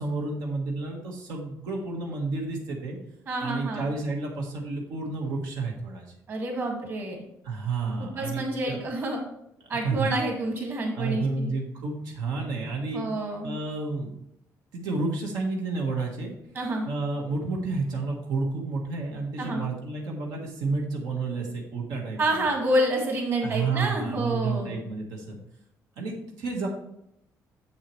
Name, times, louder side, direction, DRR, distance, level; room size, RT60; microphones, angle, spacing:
voice 1, 0.0-3.0 3.4-6.0 7.4-8.8 9.6-10.1 10.9-13.0 13.4-14.2 14.7-16.3 16.9-22.2 23.4-25.4 26.0-26.7, right 3 dB, 90° right, 0 dB, 1.5 m, -30 dB
voice 2, 3.3-3.9 6.3-7.2 8.0-9.2 9.7-11.5 12.9-13.6 16.5-16.9 19.4-19.7 22.2-24.8, right 1 dB, 40° right, 1 dB, 2.0 m, -28 dB
7.5 x 7.4 x 3.2 m, 0.78 s
cardioid pair, 160°, 6 cm